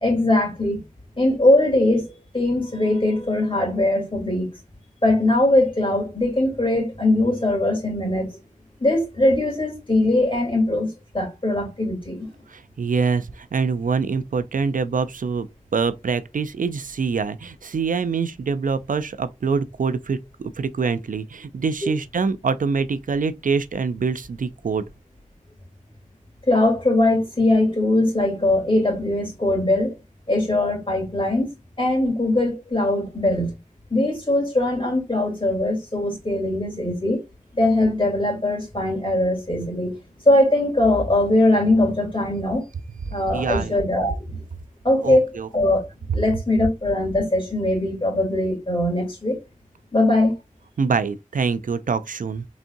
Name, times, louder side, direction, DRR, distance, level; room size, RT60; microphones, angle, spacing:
voice 1, 0.0-0.8 1.2-4.5 5.0-8.3 8.8-10.9 11.1-12.3 21.8-21.9 26.5-30.0 30.3-31.5 31.8-33.5 33.9-37.2 37.5-40.0 40.2-42.6 43.1-44.4 44.8-45.3 45.5-45.9 46.1-49.4 49.9-50.3, left 1 dB, 40° left, 3.0 m, -21 dB
voice 2, 12.5-15.5 15.7-24.8 43.1-43.8 45.0-45.5 50.8-52.5, right 5 dB, 80° right, 0.4 m, -25 dB
4.1 x 3.6 x 2.6 m
wide cardioid pair, 45°, 14 cm